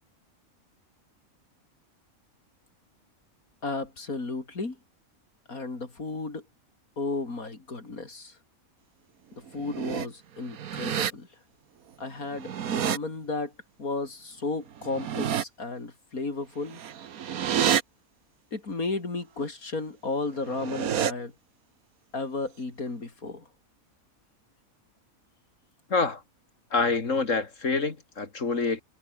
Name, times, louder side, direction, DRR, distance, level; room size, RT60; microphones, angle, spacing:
voice 1, 3.6-4.8 5.5-6.5 7.0-8.4 9.4-11.3 12.0-13.5 13.8-16.8 18.5-21.3 22.1-23.5, left 3 dB, 85° left, 4.4 m, -33 dB
sound 1, 9.5-10.1 10.5-11.1 12.2-13.0 14.8-15.4 16.7-17.8 20.3-21.1, right 9 dB, 85° right, 1.6 m, -29 dB
voice 2, 25.9-26.2 26.7-28.8, left 4 dB, 60° left, 2.8 m, -26 dB
omnidirectional pair, 1.5 m